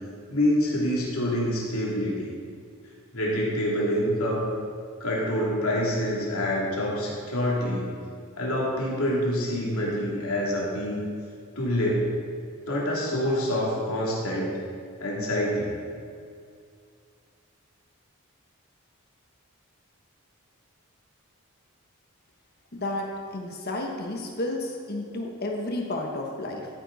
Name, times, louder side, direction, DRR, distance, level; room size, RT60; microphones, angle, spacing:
voice 1, 0.3-2.3 3.1-4.5 5.0-7.9 8.4-11.0 11.6-12.1 12.7-14.6 15.0-15.7, equal, 75° left, -4 dB, 3.0 m, -26 dB
voice 2, 22.7-23.1 23.3-26.7, left 2 dB, 45° left, 1 dB, 1.2 m, -31 dB
14.5 x 9.1 x 4.1 m, 2.3 s
head